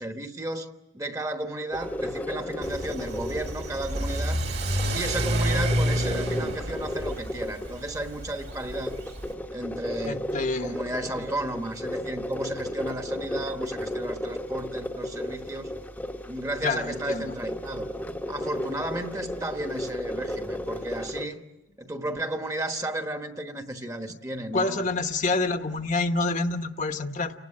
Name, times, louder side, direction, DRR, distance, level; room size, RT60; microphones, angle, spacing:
voice 1, 0.0-4.4 4.9-9.0 9.5-10.3 10.6-15.7 16.3-17.9 18.3-21.4 21.8-24.8, right 1 dB, 15° right, 6 dB, 1.2 m, -33 dB
sound 1, 1.7-21.2, left 1 dB, 10° left, 0.9 m, -35 dB
Car / Accelerating revving vroom, 2.6-9.3, right 1 dB, 55° right, 2.5 m, -29 dB
voice 2, 10.1-10.7 16.6-17.3 24.5-27.3, left 3 dB, 40° left, 6 dB, 1.0 m, -27 dB
30.0 x 19.0 x 8.7 m, 1.0 s
head